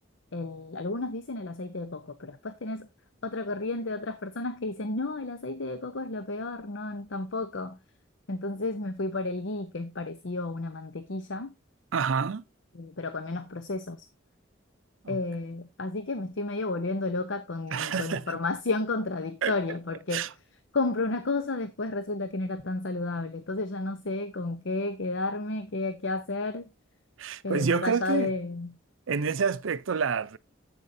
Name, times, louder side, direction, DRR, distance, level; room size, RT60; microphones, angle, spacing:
voice 1, 0.3-2.9 3.2-7.8 8.3-11.5 12.7-14.1 15.1-20.3 20.7-26.7 27.4-28.8, left 2 dB, 70° left, 0.8 m, -32 dB
voice 2, 11.9-12.4 15.0-15.2 17.7-18.4 19.4-19.5 20.1-20.3 27.2-28.3 29.1-30.4, right 5 dB, 80° right, 0.6 m, -28 dB
10.5 x 8.1 x 2.7 m
head